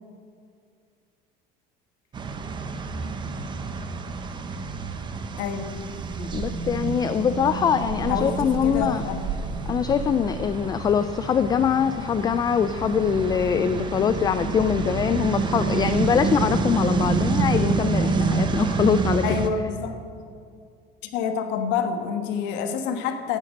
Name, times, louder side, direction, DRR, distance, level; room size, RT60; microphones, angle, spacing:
sound 1, 2.1-19.5, right 4 dB, 25° right, 0.9 m, -28 dB
voice 1, 5.4-5.7 8.1-9.2 19.2-20.0 21.1-23.4, left 6 dB, 65° left, 7 dB, 1.4 m, -27 dB
sound 2, 5.6-10.6, right 5 dB, 75° right, 1.7 m, -33 dB
voice 2, 6.2-9.0 9.7-19.2, left 7 dB, 20° left, 11 dB, 0.4 m, -23 dB
15.5 x 9.8 x 6.4 m, 2.3 s
cardioid pair, 155°, 20 cm